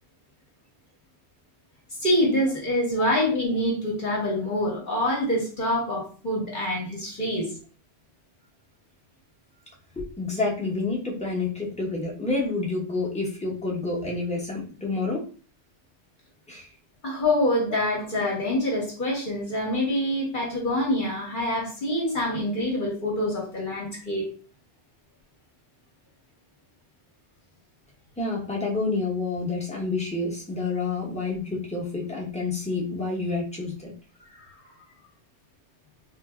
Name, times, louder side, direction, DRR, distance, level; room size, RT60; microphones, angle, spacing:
voice 1, 2.0-7.5 17.0-24.3 34.3-34.4, left 1 dB, 45° left, -2 dB, 1.1 m, -26 dB
voice 2, 10.0-15.3 16.5-16.7 28.2-33.9, left 3 dB, 5° left, -3 dB, 0.7 m, -29 dB
3.8 x 2.6 x 2.3 m, 0.39 s
omnidirectional pair, 1.2 m